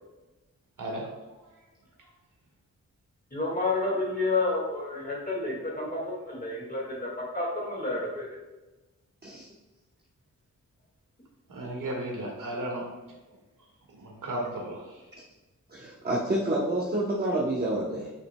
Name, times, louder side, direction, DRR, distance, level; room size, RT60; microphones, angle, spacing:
voice 1, 0.8-1.5 2.0-2.1 11.5-12.9 13.9-15.1, right 1 dB, 75° right, -1 dB, 1.8 m, -35 dB
voice 2, 3.3-8.4, left 2 dB, 25° left, -3 dB, 1.9 m, -30 dB
voice 3, 15.7-18.1, right 1 dB, 30° right, -3 dB, 0.9 m, -28 dB
9.5 x 5.9 x 2.2 m, 1.1 s
wide cardioid pair, 170°, 32 cm